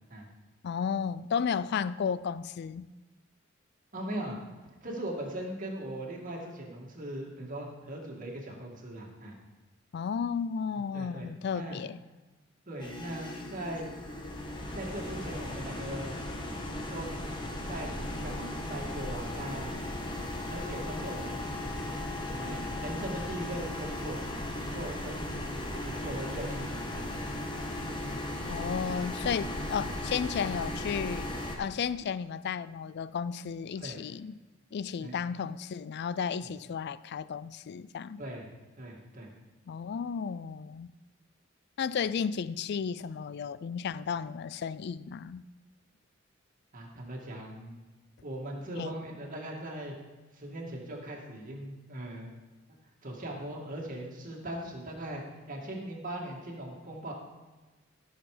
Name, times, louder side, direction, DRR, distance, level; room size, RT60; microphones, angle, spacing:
voice 1, 0.6-2.9 9.9-12.0 28.5-31.3 31.6-34.4 34.7-38.2 39.7-40.9 41.8-45.4 48.8-49.0, left 6 dB, 55° left, 0.3 m, -33 dB
voice 2, 3.9-4.4 4.8-9.4 10.9-11.8 12.7-13.9 14.7-16.1 16.9-17.1 17.6-19.8 20.5-21.4 22.3-24.2 24.6-25.3 25.7-27.3 33.8-34.0 35.0-35.2 38.2-38.5 38.8-39.3 46.7-47.7 48.2-49.9 50.3-52.3 53.0-55.2 55.5-57.1, right 1 dB, 45° right, 2.3 m, -39 dB
sound 1, 12.8-31.6, left 1 dB, 25° left, 1.4 m, -36 dB
15.0 x 6.5 x 5.0 m
head